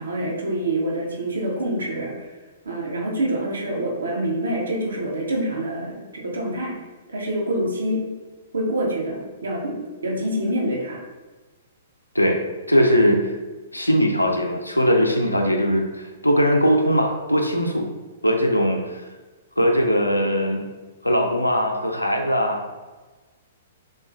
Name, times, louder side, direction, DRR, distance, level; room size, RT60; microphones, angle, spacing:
voice 1, 0.0-2.1 2.6-6.7 7.1-8.0 8.5-11.0, right 1 dB, 70° right, 0 dB, 0.6 m, -26 dB
voice 2, 12.7-13.3 13.7-17.9 18.2-19.0 19.6-20.7 21.0-22.7, equal, 90° left, 2 dB, 0.4 m, -20 dB
3.0 x 2.3 x 2.4 m, 1.3 s
figure-of-eight pair, 110°, 0 cm